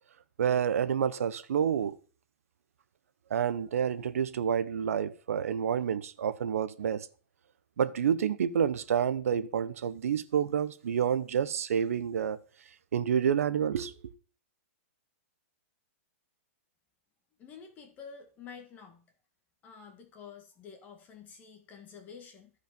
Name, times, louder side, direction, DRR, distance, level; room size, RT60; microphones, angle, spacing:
voice 1, 0.4-2.0 3.3-7.1 7.8-12.4 12.9-14.1, right 8 dB, 80° right, 1.0 m, -29 dB
voice 2, 17.4-19.0 19.6-22.5, left 6 dB, 20° left, 1.8 m, -49 dB
14.0 x 5.1 x 5.4 m
hypercardioid pair, 155°, 8 cm